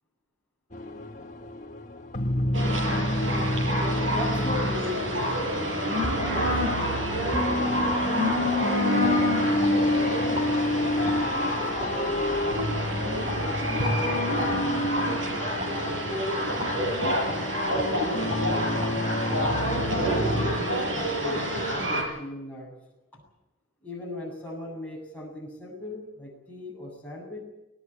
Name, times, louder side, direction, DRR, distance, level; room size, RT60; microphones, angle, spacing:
sound 1, 0.7-20.6, left 1 dB, 35° left, 1.4 m, -29 dB
voice 1, 0.8-1.5 4.1-5.6 5.9-9.0 11.2-14.2 14.6-15.1 16.0-19.5 19.9-22.7 23.1-23.2 23.8-27.4, left 1 dB, 5° left, -3 dB, 7.8 m, -38 dB
sound 2, 2.5-22.0, equal, 65° right, 6.7 m, -28 dB
sound 3, 7.9-8.0 8.4-8.6 9.0-9.7 10.3-10.5 11.1-11.2 11.8-11.9 12.6-12.7 13.2-13.4 13.8-14.0 14.4-14.5 14.9-15.1 15.6-15.8 16.6-16.7 17.3-17.4 17.7-17.9 18.3-18.5 18.8-18.9 19.3-19.4, left 2 dB, 25° right, 4.9 m, -35 dB
20.0 x 19.0 x 8.6 m, 0.95 s
head